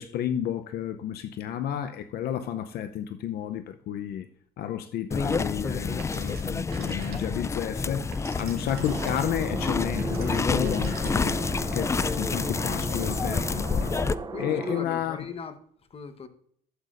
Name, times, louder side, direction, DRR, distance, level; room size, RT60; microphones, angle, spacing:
voice 1, 0.0-4.3 4.6-11.4 11.7-13.9 14.4-15.2, left 10 dB, 65° left, 0.6 m, -31 dB
sound 1, 5.1-14.1, left 4 dB, 15° left, 0.3 m, -28 dB
Telephone, 6.0-7.5 7.9-11.5, right 7 dB, 65° right, 2.1 m, -47 dB
sound 2, 8.8-14.9, right 4 dB, 25° right, 0.6 m, -36 dB
voice 2, 14.3-16.3, left 5 dB, 35° left, 1.1 m, -39 dB
12.5 x 8.1 x 2.5 m
cardioid pair, 110°, 17 cm